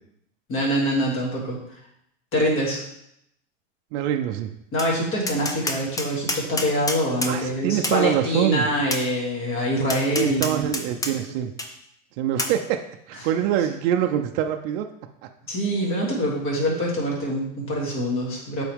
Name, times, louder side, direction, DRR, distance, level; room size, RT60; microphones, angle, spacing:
voice 1, 0.5-1.6 2.3-2.8 4.7-10.8 13.1-13.7 15.5-18.6, equal, 35° left, -3 dB, 2.7 m, -25 dB
voice 2, 3.9-4.5 7.3-8.7 10.1-11.5 12.2-12.8 13.1-14.9, right 10 dB, 55° right, 5 dB, 0.7 m, -24 dB
Tap, 4.8-4.9 5.3-7.3 7.8-8.0 8.9-9.0 9.9-11.1 11.6-11.7 12.4-12.5, left 2 dB, 10° left, 0.6 m, -27 dB
8.2 x 4.2 x 3.6 m, 0.76 s
supercardioid pair, 120°, 38 cm